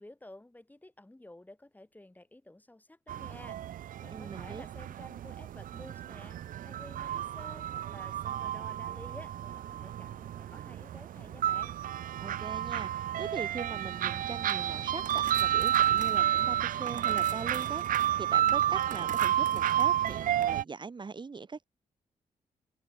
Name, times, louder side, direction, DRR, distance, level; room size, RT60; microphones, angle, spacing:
voice 1, 0.0-11.7, left 1 dB, 10° left, 5.7 m, -52 dB
sound 1, 3.1-20.6, right 11 dB, 85° right, 1.7 m, -31 dB
voice 2, 4.1-4.6 12.2-21.6, right 4 dB, 35° right, 1.4 m, -41 dB
sound 2, 14.3-20.5, right 8 dB, 65° right, 2.3 m, -47 dB
open air
cardioid pair, 90°, 14 cm